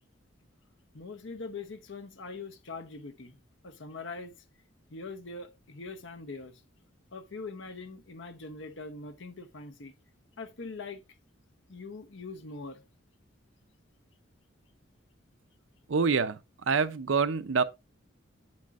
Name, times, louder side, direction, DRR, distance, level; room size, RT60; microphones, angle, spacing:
voice 1, 0.9-3.4 3.6-4.3 4.9-6.6 7.1-9.9 10.4-11.0 11.7-12.8, left 3 dB, 65° left, 0.9 m, -42 dB
voice 2, 15.9-16.4 16.7-17.6, right 5 dB, 75° right, 0.6 m, -26 dB
8.5 x 7.4 x 2.5 m
head